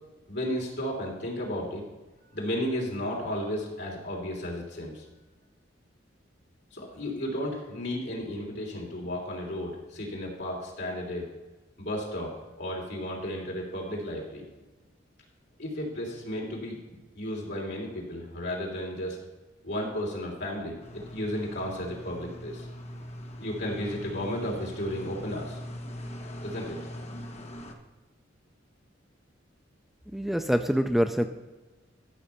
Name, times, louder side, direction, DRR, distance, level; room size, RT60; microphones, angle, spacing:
voice 1, 0.3-1.8 2.3-5.1 6.7-11.3 11.8-14.4 15.6-16.8 17.2-19.2 19.6-22.7 23.4-25.6 26.4-26.8, left 1 dB, 60° left, -2 dB, 3.5 m, -33 dB
sound 1, 20.8-27.7, equal, 35° left, 1.2 m, -41 dB
voice 2, 30.1-31.3, equal, ahead, 6 dB, 0.4 m, -25 dB
14.0 x 6.3 x 5.7 m, 1.2 s
head